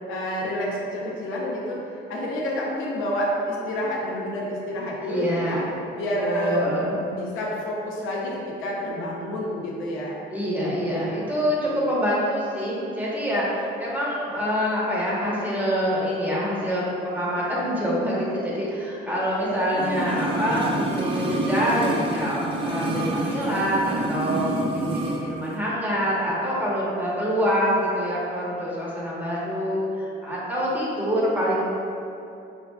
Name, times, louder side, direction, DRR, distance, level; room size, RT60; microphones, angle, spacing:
voice 1, 0.1-1.8 2.1-5.6 5.9-6.6 6.9-10.2 19.4-19.8, equal, 85° left, -4 dB, 0.6 m, -28 dB
voice 2, 5.0-5.7 6.2-7.0 10.3-31.6, equal, 10° right, -7 dB, 0.8 m, -26 dB
sound 1, 19.7-25.2 25.5-25.6, right 2 dB, 25° right, 0.5 m, -27 dB
4.3 x 2.4 x 2.2 m, 2.7 s
cardioid pair, 90°, 20 cm